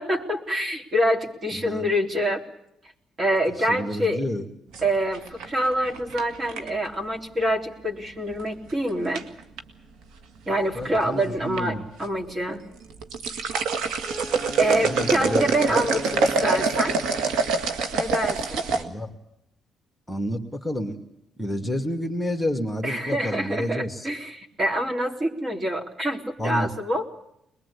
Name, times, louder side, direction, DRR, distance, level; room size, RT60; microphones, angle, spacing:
voice 1, 0.0-2.4 3.2-4.2 4.8-9.2 10.5-12.6 14.6-17.0 17.9-18.6 22.8-27.1, right 1 dB, 35° right, 2 dB, 3.8 m, -26 dB
voice 2, 1.5-1.8 3.6-4.4 10.7-11.8 14.8-15.8 18.7-19.1 20.1-21.0 21.4-24.1 26.4-26.7, equal, 5° left, 3 dB, 2.4 m, -29 dB
sound 1, 4.7-6.9 8.4-8.7 9.1-9.6 10.5-11.1 11.4-11.6 12.0-12.1 12.8-18.8, right 4 dB, 85° right, 2.0 m, -25 dB
Wind instrument woodwind instrument, 14.0-17.7, right 1 dB, 10° right, 3.2 m, -37 dB
22.5 x 21.5 x 8.4 m, 0.79 s
cardioid pair, 90°, 0 cm